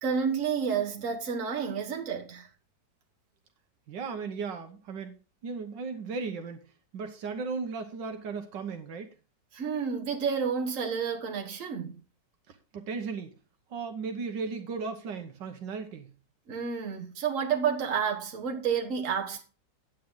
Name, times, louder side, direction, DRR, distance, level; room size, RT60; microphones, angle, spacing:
voice 1, 0.0-2.5 9.5-12.0 16.5-19.4, right 6 dB, 45° right, 1.8 m, -30 dB
voice 2, 3.9-5.1 5.4-6.7 6.9-9.1 12.5-13.3 13.7-16.1, right 4 dB, 75° right, 1.7 m, -36 dB
9.3 x 8.9 x 3.8 m
omnidirectional pair, 1.9 m